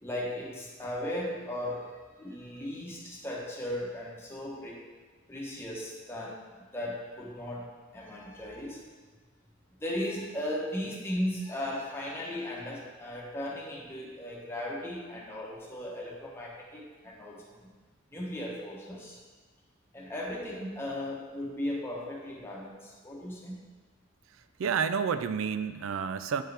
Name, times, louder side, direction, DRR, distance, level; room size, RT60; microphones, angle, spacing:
voice 1, 0.0-4.8 5.3-6.4 6.7-8.8 9.8-17.7 18.1-19.2 19.9-23.6, left 1 dB, 10° left, -3 dB, 1.0 m, -37 dB
voice 2, 24.6-26.4, right 6 dB, 70° right, 12 dB, 0.4 m, -29 dB
8.9 x 4.6 x 3.4 m, 1.4 s
head